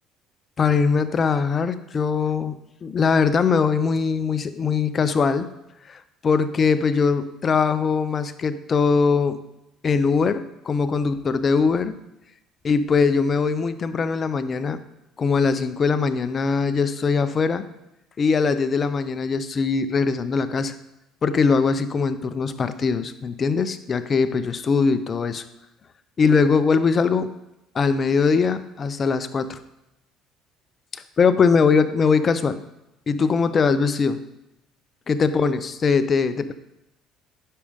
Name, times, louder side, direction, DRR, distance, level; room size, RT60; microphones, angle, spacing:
voice 1, 0.6-5.5 5.9-9.4 9.8-11.9 12.6-14.8 15.2-17.6 18.2-20.7 21.2-25.4 26.2-27.3 27.7-29.6 31.2-32.6 33.1-34.3 35.1-36.5, left 5 dB, 35° left, 11 dB, 0.6 m, -21 dB
9.9 x 6.4 x 3.6 m, 0.89 s
cardioid pair, 100°, 0 cm